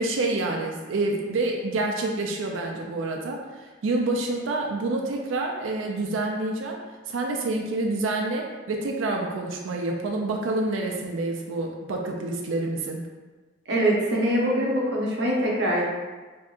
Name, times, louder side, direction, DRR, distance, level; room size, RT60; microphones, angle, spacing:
voice 1, 0.0-6.8 7.1-13.0, right 2 dB, 85° right, 1 dB, 0.4 m, -28 dB
voice 2, 13.7-15.8, right 1 dB, 60° right, -3 dB, 0.7 m, -23 dB
3.5 x 2.7 x 2.4 m, 1.3 s
head